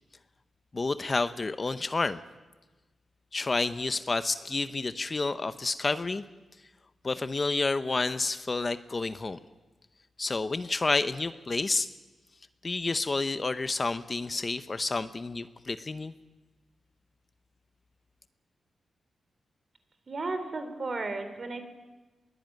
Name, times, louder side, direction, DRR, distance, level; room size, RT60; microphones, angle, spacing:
voice 1, 0.7-2.2 3.3-6.2 7.0-9.4 10.2-11.9 12.6-16.1, left 3 dB, 30° left, 12 dB, 0.7 m, -29 dB
voice 2, 20.1-21.6, right 3 dB, 40° right, 9 dB, 3.2 m, -34 dB
22.0 x 18.0 x 9.2 m, 1.2 s
wide cardioid pair, 115°, 0 cm